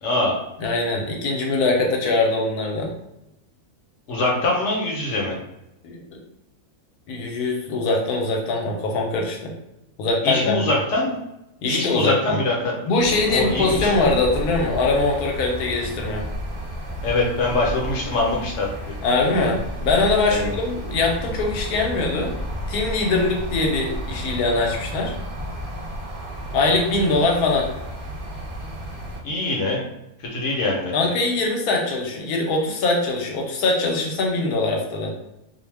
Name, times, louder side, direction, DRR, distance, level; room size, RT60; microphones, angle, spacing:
voice 1, 0.0-0.4 4.1-5.3 10.2-11.1 11.7-12.7 13.3-13.9 17.0-18.7 20.3-20.4 29.2-29.8 30.3-31.0, left 2 dB, 60° left, -2 dB, 0.9 m, -23 dB
voice 2, 0.6-2.9 5.8-6.2 7.1-9.5 10.0-10.6 11.6-12.4 12.9-16.2 19.0-22.3 22.7-25.1 26.5-27.7 30.9-35.1, left 3 dB, 80° left, 0 dB, 1.1 m, -22 dB
sound 1, 13.0-29.2, equal, 55° right, 0.6 m, -32 dB
2.6 x 2.1 x 3.2 m, 0.88 s
omnidirectional pair, 1.6 m